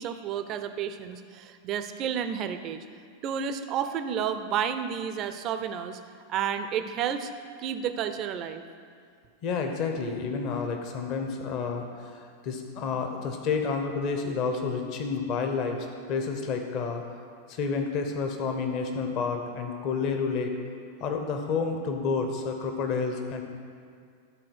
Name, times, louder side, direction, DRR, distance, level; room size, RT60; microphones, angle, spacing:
voice 1, 0.0-2.8 3.2-6.0 6.3-7.3 7.6-8.6, right 8 dB, 35° right, 9 dB, 0.5 m, -31 dB
voice 2, 9.4-15.8 16.1-17.0 17.5-20.5 21.0-23.4, left 5 dB, 40° left, 4 dB, 1.0 m, -30 dB
12.0 x 4.3 x 6.2 m, 2.2 s
figure-of-eight pair, 90°, 0 cm